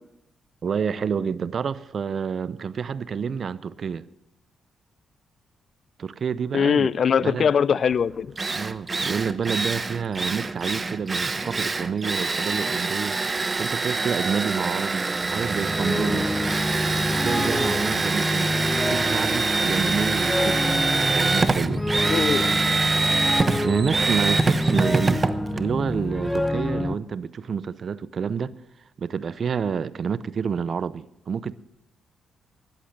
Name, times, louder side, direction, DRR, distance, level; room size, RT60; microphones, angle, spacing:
voice 1, 0.6-4.0 6.0-6.9 7.2-7.5 8.5-13.2 13.6-16.3 17.2-21.9 23.6-25.3 25.5-28.6 29.0-31.6, right 6 dB, 55° right, 0.6 m, -28 dB
voice 2, 6.5-8.3 22.1-22.4, left 7 dB, 60° left, 0.4 m, -21 dB
Drill, 7.9-8.0 8.4-26.5, right 3 dB, 35° right, 0.9 m, -25 dB
sound 1, 15.2-26.9, left 1 dB, 10° left, 0.9 m, -28 dB
13.5 x 11.5 x 6.6 m
supercardioid pair, 55°, 0 cm